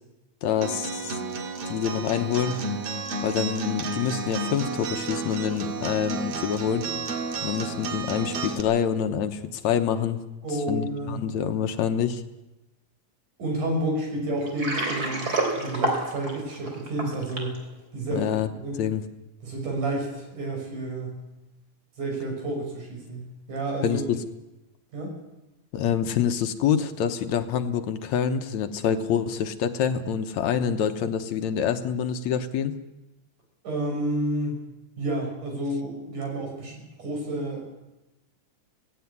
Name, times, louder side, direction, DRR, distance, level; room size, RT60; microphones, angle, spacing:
voice 1, 0.4-1.1 1.7-2.6 3.2-6.9 7.4-10.2 10.7-12.2 18.1-18.5 18.8-19.0 23.8-24.2 25.7-32.7, left 8 dB, 70° left, 8 dB, 2.2 m, -26 dB
Acoustic guitar, 0.6-8.6, right 3 dB, 55° right, 2.6 m, -32 dB
voice 2, 10.4-11.2 13.4-17.6 17.9-18.8 19.4-21.2 22.0-24.0 24.9-25.1 33.6-34.5 35.0-37.6, right 1 dB, 80° right, 1 dB, 7.3 m, -30 dB
Water, 14.4-17.6, right 2 dB, 30° right, 3.9 m, -28 dB
17.5 x 16.5 x 9.6 m, 0.98 s
omnidirectional pair, 3.5 m